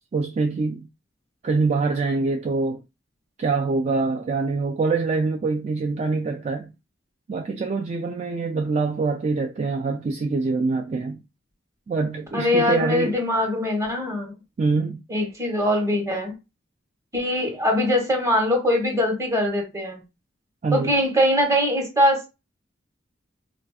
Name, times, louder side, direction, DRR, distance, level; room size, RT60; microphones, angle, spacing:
voice 1, 0.1-0.9 1.4-2.8 3.4-6.7 7.3-11.2 11.9-13.1 14.6-15.0 20.6-20.9, right 4 dB, 35° right, 0.3 m, -24 dB
voice 2, 12.3-14.3 15.1-16.3 17.1-20.0 20.7-22.3, left 1 dB, 15° right, 1.0 m, -22 dB
4.0 x 2.5 x 2.3 m
head